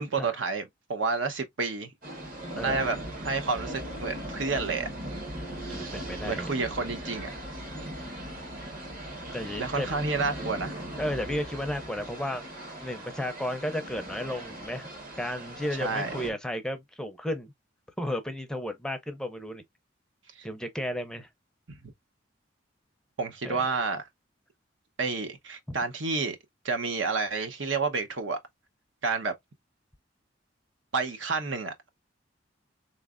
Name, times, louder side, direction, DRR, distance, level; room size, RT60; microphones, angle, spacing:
voice 1, 0.0-1.9 2.6-4.9 6.3-7.3 9.6-10.8 15.8-16.1 20.4-20.5 21.7-21.8 23.2-24.0 25.0-26.4 26.6-28.4 29.0-29.3 30.9-31.9, right 4 dB, 80° right, 0.9 m, -30 dB
sound 1, 2.0-16.3, right 1 dB, 50° right, 1.3 m, -39 dB
voice 2, 5.7-6.6 9.3-9.9 11.0-12.4 12.8-14.9 15.2-17.5 18.0-19.6 20.4-21.3 23.4-23.7 25.7-25.8, left 1 dB, 5° left, 0.5 m, -33 dB
3.9 x 3.2 x 2.4 m
head